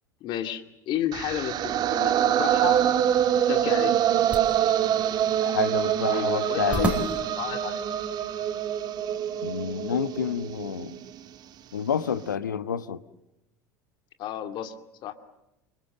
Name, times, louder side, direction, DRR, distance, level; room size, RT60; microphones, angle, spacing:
voice 1, 0.2-2.8 3.3-4.0 6.1-7.8 14.2-14.7 15.0-15.1, left 11 dB, 50° left, 2.5 m, -32 dB
sound 1, 1.1-11.2, right 10 dB, 45° right, 1.6 m, -25 dB
sound 2, 3.6-8.6, right 1 dB, 10° right, 4.6 m, -35 dB
voice 2, 5.4-7.0 9.4-11.0 11.7-13.0, left 7 dB, 85° left, 1.3 m, -29 dB
29.0 x 25.0 x 7.9 m
hypercardioid pair, 75°, 10 cm